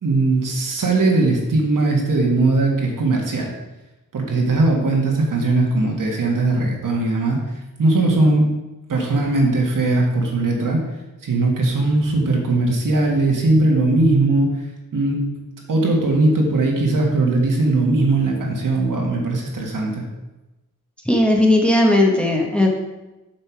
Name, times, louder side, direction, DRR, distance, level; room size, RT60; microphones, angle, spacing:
voice 1, 0.0-3.5 4.1-7.4 7.8-8.5 8.9-10.8 11.2-14.5 14.9-15.3 15.7-20.0, right 2 dB, 65° right, 0 dB, 1.9 m, -19 dB
voice 2, 21.0-22.7, left 1 dB, 5° left, 0 dB, 1.3 m, -16 dB
7.8 x 5.7 x 4.6 m, 1.0 s
wide cardioid pair, 95°, 34 cm